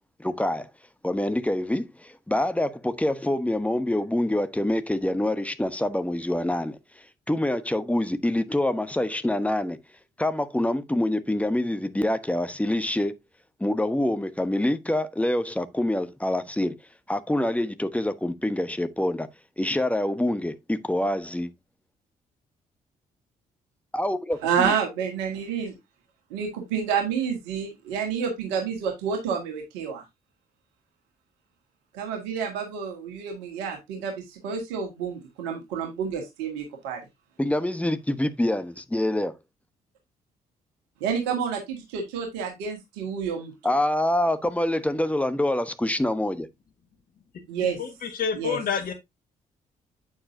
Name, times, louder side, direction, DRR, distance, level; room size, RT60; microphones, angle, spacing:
voice 1, 0.2-0.7 1.0-6.8 7.3-9.8 10.2-13.1 13.6-16.7 17.1-19.3 19.6-21.5 23.9-24.7 37.4-39.3 43.6-46.5, left 1 dB, 5° left, 1.1 m, -26 dB
voice 2, 24.4-25.7 26.3-30.0 31.9-37.0 41.0-43.5 47.5-47.8 48.4-48.6, right 7 dB, 70° right, 1.9 m, -29 dB
voice 3, 47.8-48.9, left 7 dB, 50° left, 1.8 m, -28 dB
8.7 x 7.2 x 2.7 m
figure-of-eight pair, 45°, 19 cm